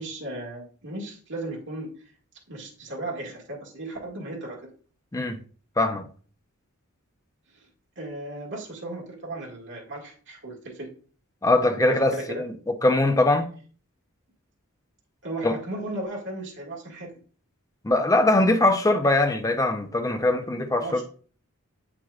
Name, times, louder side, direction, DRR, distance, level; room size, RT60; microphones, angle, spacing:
voice 1, 0.0-2.0 2.5-4.7 7.5-7.7 7.9-10.9 11.7-12.4 15.2-17.1 20.8-21.0, right 2 dB, 60° right, 1.8 m, -35 dB
voice 2, 5.8-6.1 11.4-13.5 15.4-15.5 17.8-21.0, left 2 dB, 15° left, 0.6 m, -22 dB
7.6 x 5.9 x 2.4 m
head